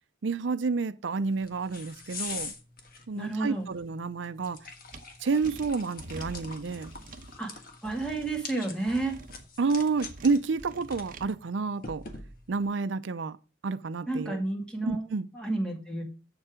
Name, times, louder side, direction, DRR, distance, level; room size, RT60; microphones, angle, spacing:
voice 1, 0.2-2.5 3.1-4.6 5.2-6.9 9.6-12.0 12.5-13.4 13.6-14.4 14.8-15.3, right 4 dB, 80° right, 0.5 m, -29 dB
sound 1, 1.2-12.6, left 4 dB, 50° left, 1.4 m, -45 dB
voice 2, 3.1-3.7 7.4-7.5 7.8-9.2 14.1-15.1 15.3-16.0, right 2 dB, 5° left, 2.1 m, -31 dB
sound 2, 4.9-5.0 5.4-7.3 7.8-8.4 8.9-9.4 10.0-11.3, right 2 dB, 45° right, 0.9 m, -46 dB
7.7 x 7.2 x 4.9 m
head